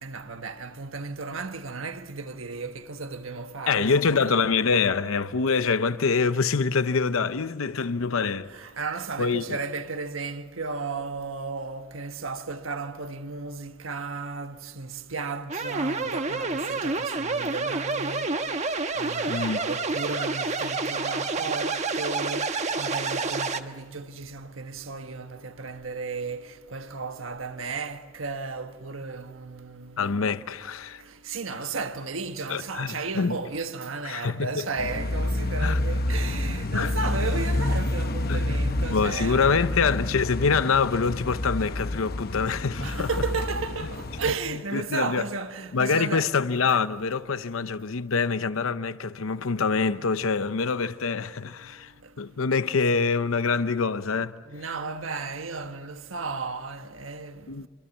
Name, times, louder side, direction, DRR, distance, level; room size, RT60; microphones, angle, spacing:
voice 1, 0.0-4.4 8.5-18.3 18.9-22.5 22.8-30.2 31.2-39.6 42.8-46.3 54.5-57.7, right 4 dB, 80° right, 1.4 m, -34 dB
voice 2, 3.7-8.5 9.2-9.6 19.3-19.6 30.0-31.0 32.5-33.4 34.0-34.5 35.6-35.8 36.7-36.9 38.3-38.4 38.9-43.1 44.7-45.2 45.7-54.4 57.5-57.7, left 5 dB, 85° left, 0.7 m, -25 dB
sound 1, 15.5-23.6, right 3 dB, 35° right, 1.2 m, -28 dB
sound 2, 34.8-44.4, left 1 dB, 50° left, 1.0 m, -28 dB
26.5 x 25.0 x 7.2 m
head